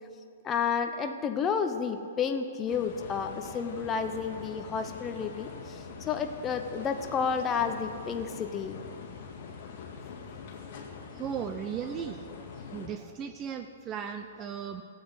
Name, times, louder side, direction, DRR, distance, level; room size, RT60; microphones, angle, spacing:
voice 1, 0.4-8.8, left 6 dB, 20° left, 6 dB, 0.6 m, -31 dB
sound 1, 2.7-12.9, left 5 dB, 45° left, 2.0 m, -44 dB
voice 2, 11.1-12.3 12.6-14.8, right 8 dB, 25° right, 8 dB, 0.5 m, -36 dB
13.0 x 8.0 x 8.1 m, 2.4 s
hypercardioid pair, 145°, 0 cm